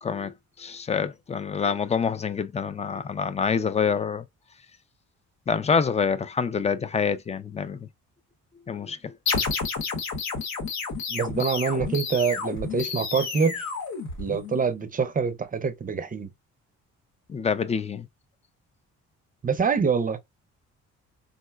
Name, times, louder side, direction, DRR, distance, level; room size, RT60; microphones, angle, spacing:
voice 1, 0.0-4.2 5.5-7.9 8.7-9.1 17.3-18.1, left 6 dB, 25° left, 0.4 m, -26 dB
sound 1, 9.3-14.7, left 4 dB, 65° left, 0.9 m, -30 dB
voice 2, 11.1-13.7 14.2-16.3 19.4-20.2, right 5 dB, 30° right, 0.5 m, -25 dB
3.7 x 2.1 x 2.3 m
cardioid pair, 90°, 30 cm